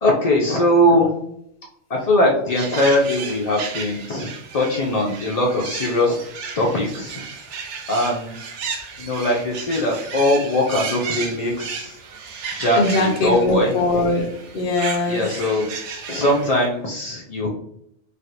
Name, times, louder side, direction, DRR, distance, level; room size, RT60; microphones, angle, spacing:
voice 1, 0.0-1.2 1.9-6.2 6.6-7.2 7.9-8.4 9.0-12.0 12.6-13.7 15.1-15.7 16.1-17.5, left 1 dB, 85° left, -2 dB, 0.3 m, -20 dB
sound 1, 2.5-16.6, right 5 dB, 70° right, 0.8 m, -34 dB
voice 2, 12.8-14.2 14.5-15.2, left 2 dB, 55° left, 3 dB, 0.7 m, -21 dB
3.2 x 2.3 x 2.7 m, 0.75 s
omnidirectional pair, 1.3 m